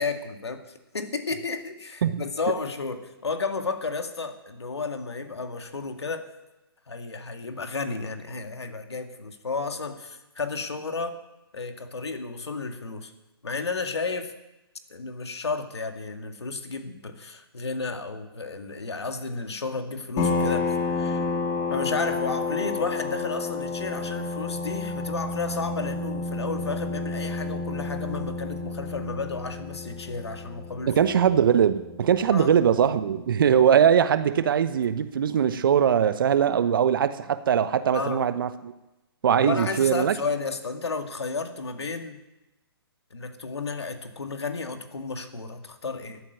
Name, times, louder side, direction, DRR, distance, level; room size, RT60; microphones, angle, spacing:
voice 1, 0.0-6.2 6.9-11.2 11.5-13.1 13.4-14.3 14.9-21.2 21.7-31.0 32.3-32.5 33.5-33.6 37.9-38.3 39.4-42.2 43.1-46.2, left 4 dB, 85° left, 2.1 m, -32 dB
sound 1, 20.2-33.4, left 3 dB, 30° left, 2.1 m, -31 dB
voice 2, 30.9-38.7 39.2-40.2, right 8 dB, 55° right, 1.1 m, -21 dB
14.0 x 8.6 x 9.5 m
hypercardioid pair, 140°, 14 cm